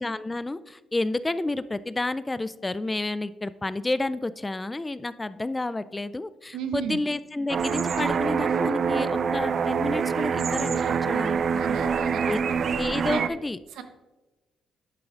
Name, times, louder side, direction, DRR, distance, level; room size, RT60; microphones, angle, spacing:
voice 1, 0.0-11.6 12.3-12.4 12.8-13.6, left 2 dB, 20° left, 15 dB, 0.3 m, -30 dB
voice 2, 6.5-7.0 11.5-12.4 13.1-13.3 13.7-13.8, right 7 dB, 85° right, 8 dB, 0.9 m, -33 dB
sound 1, 7.5-13.3, right 6 dB, 55° right, 0.4 m, -25 dB
11.5 x 8.3 x 2.5 m, 1.1 s
cardioid pair, 85°, 0 cm